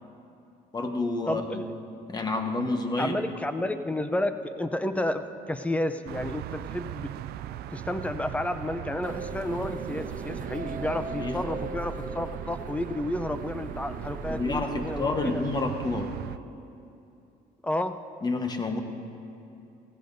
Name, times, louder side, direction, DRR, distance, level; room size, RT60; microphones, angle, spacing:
voice 1, 0.7-1.6 2.1-3.2 11.1-11.4 14.3-16.2 18.2-18.8, left 2 dB, 25° left, 5 dB, 1.1 m, -29 dB
voice 2, 1.3-1.7 3.0-7.1 7.7-15.4 17.6-18.0, left 1 dB, 10° left, 9 dB, 0.5 m, -31 dB
sound 1, 6.1-16.4, right 12 dB, 70° right, 0.4 m, -40 dB
sound 2, 9.0-15.1, right 4 dB, 50° right, 1.0 m, -38 dB
17.0 x 15.5 x 2.7 m, 2.7 s
cardioid pair, 110°, 17 cm